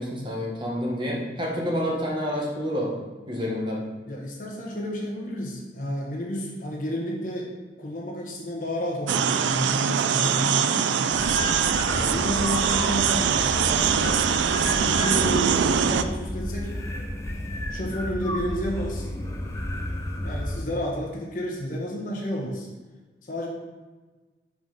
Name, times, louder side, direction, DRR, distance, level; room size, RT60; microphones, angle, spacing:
voice 1, 0.0-2.9 3.3-3.8 11.8-12.1, equal, 25° right, -3 dB, 1.0 m, -28 dB
voice 2, 4.0-7.5 7.8-11.1 12.0-14.2 14.5-16.7 17.7-19.1 20.2-22.7 23.2-23.5, equal, 45° left, -3 dB, 1.2 m, -31 dB
sound 1, 9.1-16.0, right 7 dB, 80° right, 0.3 m, -23 dB
sound 2, 11.1-20.7, left 1 dB, 15° left, 0.5 m, -32 dB
5.2 x 4.9 x 3.8 m, 1.3 s
head